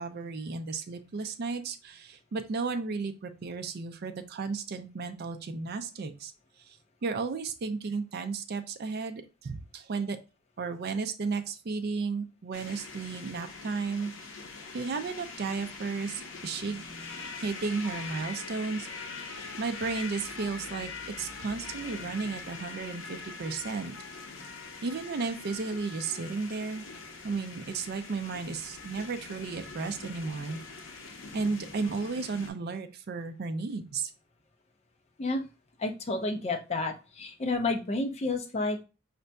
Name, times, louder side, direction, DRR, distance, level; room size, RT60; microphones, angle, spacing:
voice 1, 0.0-6.3 7.0-10.2 10.6-14.1 14.7-16.8 17.4-18.9 19.3-20.9 21.2-23.9 24.8-26.8 27.2-30.6 31.3-34.1, right 4 dB, 50° right, 8 dB, 0.4 m, -34 dB
sound 1, 12.5-32.5, left 4 dB, 70° left, 0.7 m, -43 dB
voice 2, 35.8-38.8, left 2 dB, 30° left, 3 dB, 0.5 m, -30 dB
5.1 x 2.6 x 2.2 m, 0.31 s
head